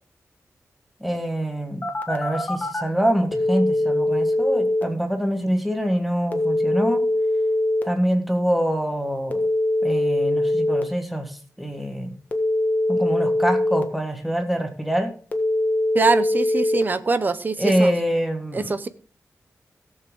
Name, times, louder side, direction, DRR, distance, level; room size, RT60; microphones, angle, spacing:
voice 1, 1.0-1.8 2.1-7.0 7.8-9.4 9.8-12.1 12.9-15.1 17.6-18.7, equal, ahead, 4 dB, 1.6 m, -25 dB
Telephone, 1.8-2.8 3.3-4.8 6.3-7.8 9.3-10.8 12.3-13.8 15.3-16.8, left 1 dB, 30° left, 1.4 m, -22 dB
voice 2, 15.9-17.9 18.5-18.9, right 4 dB, 35° right, 13 dB, 0.8 m, -23 dB
17.0 x 7.3 x 3.7 m, 0.40 s
wide cardioid pair, 170°, 6 cm